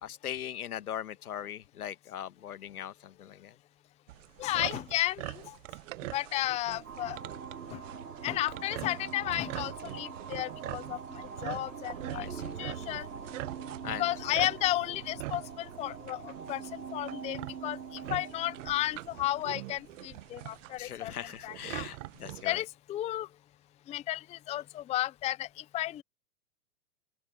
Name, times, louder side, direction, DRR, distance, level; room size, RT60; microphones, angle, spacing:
voice 1, 0.0-3.5 12.1-12.5 12.9-13.0 13.8-14.4 20.8-22.6, left 10 dB, 80° left, 1.6 m, -40 dB
sound 1, 4.1-22.6, right 19 dB, 55° right, 1.2 m, -44 dB
voice 2, 4.4-5.6 6.1-7.2 7.7-7.8 8.2-12.3 12.6-13.1 14.0-21.1 21.4-21.9 22.4-23.3 23.9-26.0, left 14 dB, 15° left, 0.5 m, -33 dB
sound 2, 6.8-21.0, right 6 dB, 85° right, 4.2 m, -44 dB
open air
hypercardioid pair, 105°, 44 cm